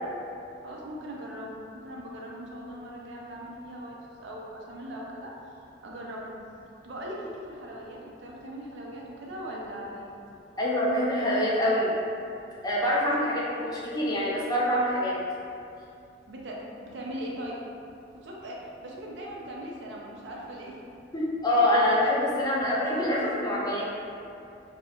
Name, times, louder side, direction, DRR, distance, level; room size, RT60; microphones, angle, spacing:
voice 1, 0.6-5.3 5.8-6.4 6.8-10.1 16.3-17.6 18.1-20.8, equal, 70° right, -3 dB, 0.4 m, -39 dB
voice 2, 10.6-11.9 12.6-15.1 21.1-23.9, left 1 dB, 20° left, -6 dB, 0.4 m, -25 dB
2.3 x 2.0 x 2.9 m, 2.6 s
head